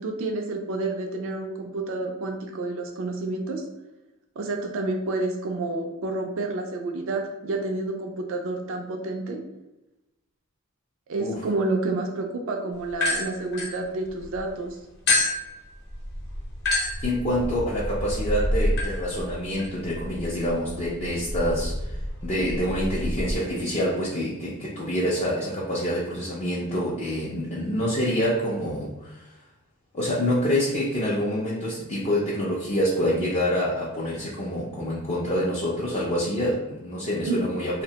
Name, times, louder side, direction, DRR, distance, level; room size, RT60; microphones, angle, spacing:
voice 1, 0.0-3.6 4.4-9.4 11.1-14.8 37.2-37.4, right 2 dB, 65° right, 3 dB, 0.3 m, -29 dB
sound 1, 12.9-14.4 15.1-23.4, left 1 dB, 50° left, 0.7 m, -29 dB
voice 2, 17.0-22.0 22.2-29.3 29.9-37.8, equal, 30° left, -6 dB, 0.4 m, -26 dB
2.7 x 2.1 x 2.8 m, 0.97 s
head